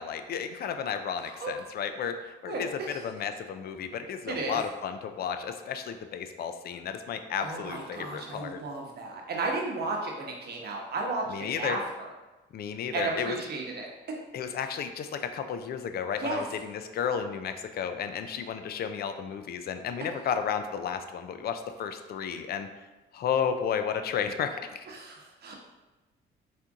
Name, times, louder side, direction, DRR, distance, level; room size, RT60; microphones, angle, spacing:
voice 1, 0.0-2.7 3.0-8.6 11.3-11.8 12.5-13.4 14.3-22.7 23.1-24.9, left 7 dB, 50° left, 8 dB, 0.4 m, -33 dB
voice 2, 1.2-1.5 2.5-3.0 4.3-4.6 7.4-12.1 12.9-13.9 16.2-16.4 24.9-25.5, right 3 dB, 55° right, -1 dB, 1.0 m, -34 dB
4.3 x 2.5 x 3.6 m, 1.1 s
cardioid pair, 90°, 20 cm